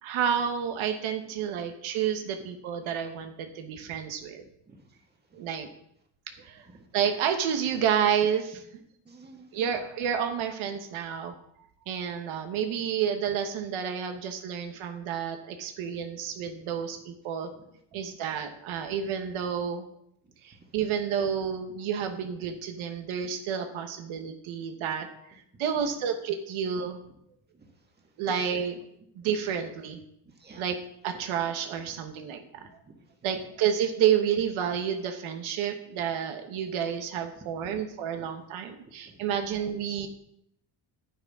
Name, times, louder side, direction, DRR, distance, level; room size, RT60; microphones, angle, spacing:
voice 1, 0.0-4.4 5.4-5.7 6.4-6.7 6.9-8.6 9.5-11.3 11.9-17.5 17.9-19.9 20.4-27.0 28.2-28.7 29.2-30.0 30.6-30.8 31.0-32.5 33.2-40.1, right 8 dB, 75° right, 6 dB, 1.1 m, -30 dB
voice 2, 9.0-9.8 16.4-16.5 17.6-17.7 17.9-18.0 25.5-25.6 27.5-27.7 28.0-28.4 30.2-30.7 32.6-32.9 37.4-37.8 38.2-38.3 39.0-39.2, right 1 dB, 20° right, 1 dB, 1.7 m, -50 dB
9.7 x 9.3 x 3.6 m, 0.75 s
cardioid pair, 135°, 48 cm